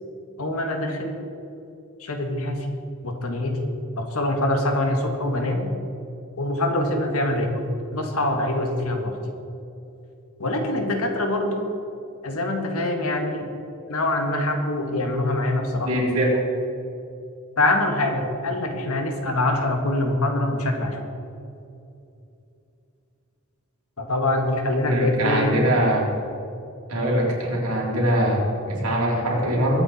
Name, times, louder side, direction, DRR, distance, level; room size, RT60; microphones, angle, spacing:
voice 1, 0.4-1.2 2.0-2.7 3.0-3.6 4.0-5.7 6.4-9.1 10.4-11.6 12.2-13.5 13.9-15.9 17.6-21.0 24.0-25.5, left 1 dB, 75° left, 3 dB, 1.8 m, -24 dB
voice 2, 15.9-16.3 24.9-26.1 26.9-29.8, right 1 dB, 85° right, -3 dB, 3.8 m, -22 dB
22.0 x 8.7 x 4.4 m, 2.7 s
head